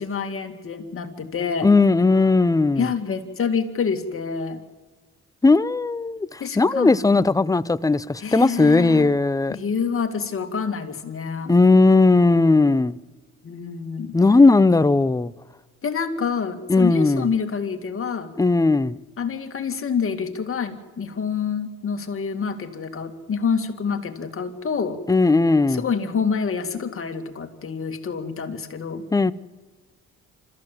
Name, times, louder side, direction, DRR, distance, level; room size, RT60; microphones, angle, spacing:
voice 1, 0.0-1.7 2.8-4.6 6.4-7.0 8.2-9.1 9.5-11.5 13.4-14.2 15.8-18.3 19.2-25.0 25.7-29.0, left 6 dB, 45° left, 2.3 m, -27 dB
voice 2, 1.6-2.9 5.4-9.6 11.5-13.0 14.1-15.3 16.7-17.3 18.4-19.0 25.1-25.8 29.1-29.3, left 3 dB, 10° left, 0.6 m, -17 dB
25.5 x 14.0 x 7.6 m
cardioid pair, 90°, 30 cm